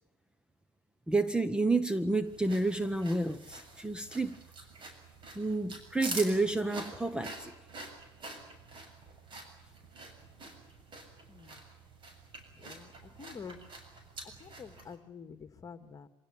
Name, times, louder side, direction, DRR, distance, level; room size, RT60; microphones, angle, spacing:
voice 1, 1.1-4.4 5.3-7.5, right 2 dB, 5° right, 1.0 m, -30 dB
sound 1, 2.3-15.0, right 2 dB, 40° right, 7.2 m, -46 dB
voice 2, 11.3-11.6 12.5-13.7 14.4-16.1, left 6 dB, 25° left, 2.2 m, -48 dB
26.0 x 17.5 x 9.9 m
hypercardioid pair, 90°, 13 cm